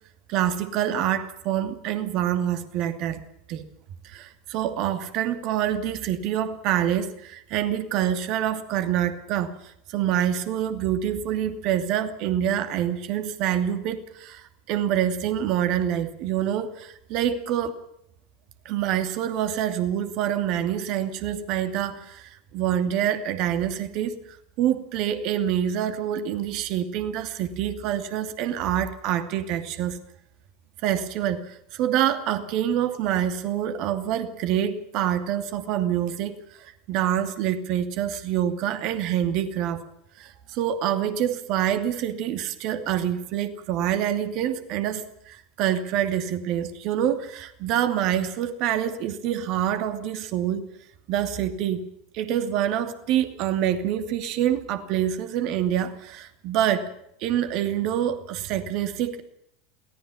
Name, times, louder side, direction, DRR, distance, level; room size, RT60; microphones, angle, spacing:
voice 1, 0.3-3.2 3.5-3.6 4.0-17.8 18.6-24.2 24.6-30.0 30.8-39.8 40.2-50.7 51.1-51.8 52.1-56.9 57.2-59.2, right 10 dB, 50° right, 9 dB, 2.6 m, -26 dB
22.5 x 18.0 x 7.2 m, 0.74 s
figure-of-eight pair, 80°, 0 cm